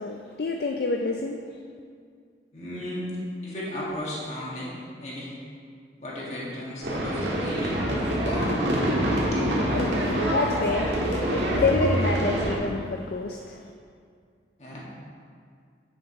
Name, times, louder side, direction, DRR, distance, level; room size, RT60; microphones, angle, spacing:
voice 1, 0.0-1.4 9.2-9.3 9.6-13.7, left 3 dB, 60° left, 2 dB, 0.4 m, -28 dB
voice 2, 2.5-3.1 3.4-4.7 5.0-5.3 6.0-8.6 9.1-9.4 14.6-14.8, left 1 dB, 40° left, -7 dB, 1.9 m, -35 dB
sound 1, 6.8-12.6, right 1 dB, 85° right, 1.5 m, -25 dB
9.5 x 7.1 x 3.1 m, 2.2 s
head